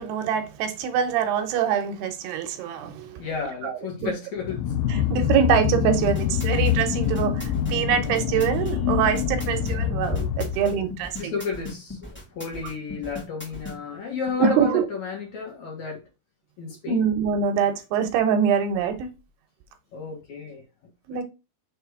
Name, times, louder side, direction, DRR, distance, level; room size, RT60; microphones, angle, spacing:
voice 1, 0.0-3.2 3.6-3.7 4.0-4.1 4.9-11.3 14.4-14.8 16.9-19.1 21.1-21.2, right 7 dB, 80° right, 2.9 m, -24 dB
voice 2, 3.2-4.9 11.2-16.0 16.6-17.0 19.9-20.6, left 4 dB, 55° left, 2.5 m, -32 dB
sound 1, 4.4-11.0, left 9 dB, 80° left, 2.2 m, -25 dB
sound 2, 6.0-13.8, left 2 dB, 5° left, 1.4 m, -38 dB
6.5 x 3.3 x 4.7 m
omnidirectional pair, 4.6 m